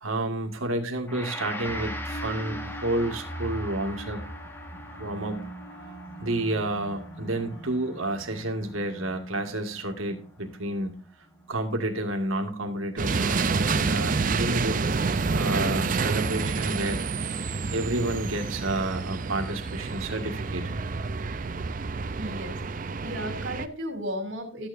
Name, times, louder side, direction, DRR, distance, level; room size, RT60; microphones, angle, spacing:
voice 1, 0.0-4.3 4.7-5.5 6.2-10.9 11.5-14.8 15.2-17.0 17.7-20.7, right 1 dB, 90° right, 4 dB, 1.8 m, -30 dB
Gong, 1.1-10.3, left 1 dB, 10° left, 0.7 m, -42 dB
sound 1, 1.7-12.1, right 1 dB, 55° left, 1.3 m, -41 dB
sound 2, 13.0-23.7, right 4 dB, 40° right, 0.5 m, -28 dB
voice 2, 22.2-22.6 23.0-24.7, equal, 70° right, 4 dB, 2.6 m, -34 dB
13.0 x 9.0 x 2.6 m, 0.40 s
head